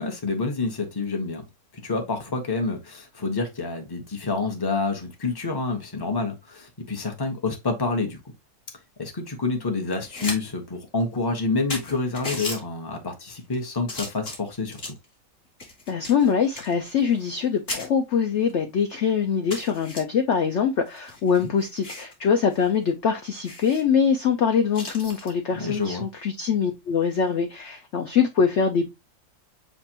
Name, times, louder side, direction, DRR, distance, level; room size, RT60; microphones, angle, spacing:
voice 1, 0.0-1.4 1.7-8.2 9.0-14.9 21.4-21.5 25.5-26.0, left 3 dB, 20° left, 0.7 m, -28 dB
sound 1, 9.9-10.4 10.7-10.8 11.4-11.5 11.7-12.6 13.3-13.5 13.9-15.0 15.6-17.4 17.7-17.9 18.5-18.6 18.9-19.0 19.5-20.0 20.9-22.1 22.5-22.7 22.9-23.0 23.4-23.8 24.7-25.3 27.0-27.3, left 2 dB, 35° left, 1.8 m, -35 dB
voice 2, 15.9-29.0, left 6 dB, 70° left, 0.6 m, -23 dB
7.3 x 2.5 x 2.8 m
omnidirectional pair, 1.9 m